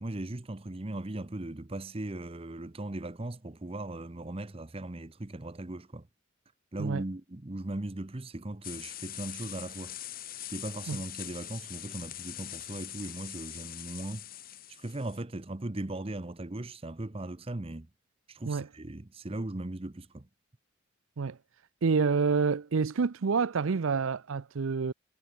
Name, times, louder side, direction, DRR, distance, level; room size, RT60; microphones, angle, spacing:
voice 1, 0.0-6.1 6.7-10.0 10.5-14.2 14.7-17.9 18.3-20.3, right 1 dB, 30° right, 0.8 m, -38 dB
sound 1, 8.6-15.2, left 13 dB, 45° left, 1.2 m, -42 dB
voice 2, 21.8-24.9, right 5 dB, 75° right, 0.5 m, -28 dB
head